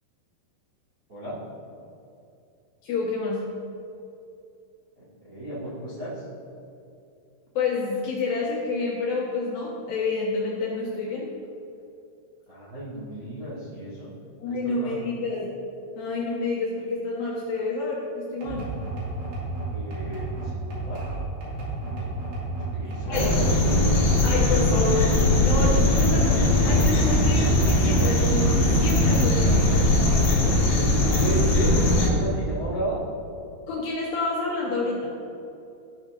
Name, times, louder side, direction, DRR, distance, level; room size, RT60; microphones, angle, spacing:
voice 1, 2.8-3.4 7.6-11.3 14.4-15.5 16.0-18.7 22.8-23.3 24.2-25.1 25.4-29.8 33.7-35.1, left 3 dB, 75° left, -4 dB, 2.3 m, -28 dB
voice 2, 5.2-6.2 12.5-14.1 14.5-15.0 19.7-21.0 21.8-22.0 22.6-23.5 30.8-33.0, right 1 dB, 75° right, -9 dB, 0.8 m, -33 dB
sound 1, 18.4-28.4 28.7-30.5, right 2 dB, 55° right, 3.8 m, -32 dB
sound 2, 23.1-32.1, left 1 dB, 55° left, 1.8 m, -20 dB
13.5 x 5.6 x 3.5 m, 2.6 s
omnidirectional pair, 5.4 m